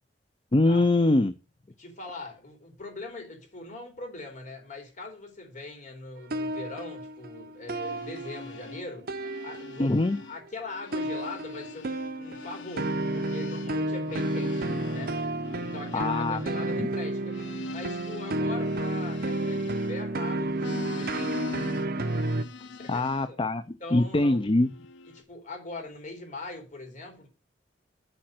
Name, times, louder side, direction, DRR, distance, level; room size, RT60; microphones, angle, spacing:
voice 1, 0.5-1.3 9.8-10.2 15.9-16.4 16.8-16.9 22.9-24.7, left 2 dB, 30° left, 0.5 m, -23 dB
voice 2, 1.8-9.1 9.4-9.9 10.2-15.2 15.6-17.4 17.7-21.5 22.6-23.4 23.8-24.4 25.1-27.3, left 2 dB, 45° left, 4.3 m, -41 dB
sound 1, 6.2-8.8 9.1-10.1 10.9-22.4, right 1 dB, 55° right, 0.8 m, -31 dB
sound 2, 7.6-10.4 10.7-20.2 20.5-23.3 24.0-25.2, left 3 dB, 90° left, 0.7 m, -43 dB
8.7 x 5.3 x 7.7 m
head